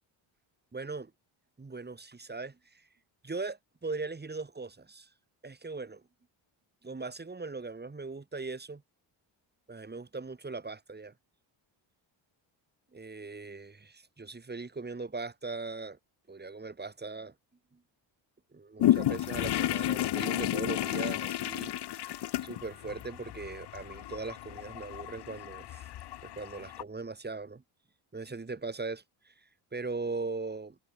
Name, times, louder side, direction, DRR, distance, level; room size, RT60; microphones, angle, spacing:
voice 1, 0.7-1.1 1.6-2.8 3.2-5.1 5.4-6.0 6.8-8.8 9.7-11.1 12.9-16.0 16.3-17.3 17.7-17.8 18.5-25.9 26.2-27.6 28.1-29.3 29.7-30.8, right 3 dB, 20° right, 2.8 m, -39 dB
sound 1, 18.8-26.8, left 13 dB, 55° left, 0.9 m, -32 dB
cardioid pair, 90°, 48 cm